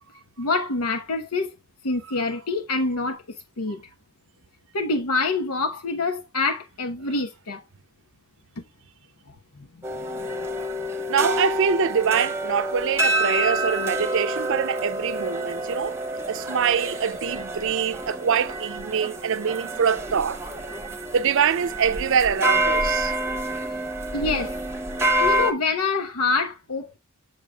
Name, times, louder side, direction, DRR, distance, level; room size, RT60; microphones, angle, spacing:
voice 1, 0.4-1.6 1.8-3.2 3.6-3.8 4.7-7.6 9.5-9.8 10.2-10.3 24.1-24.5 25.2-27.0, left 3 dB, 85° left, 1.1 m, -26 dB
sound 1, 9.8-25.5, right 1 dB, 10° right, 1.0 m, -27 dB
voice 2, 11.1-16.0 16.3-20.4 21.1-23.1, right 7 dB, 60° right, 0.5 m, -24 dB
6.6 x 6.5 x 2.3 m
head